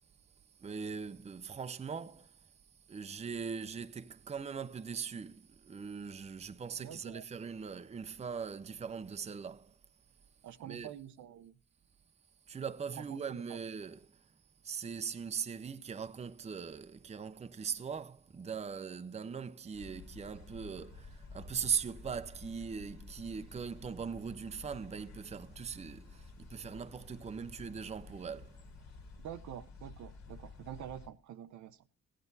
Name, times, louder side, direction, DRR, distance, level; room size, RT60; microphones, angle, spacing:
voice 1, 0.6-2.5 2.9-9.8 10.6-10.9 12.5-14.3 14.6-28.6, right 6 dB, 20° right, 0.6 m, -40 dB
voice 2, 6.8-7.2 10.4-11.5 13.0-13.4 29.2-31.8, right 10 dB, 75° right, 0.7 m, -47 dB
sound 1, 19.7-31.1, left 3 dB, 65° left, 1.8 m, -52 dB
15.0 x 8.9 x 4.0 m
cardioid pair, 90°, 30 cm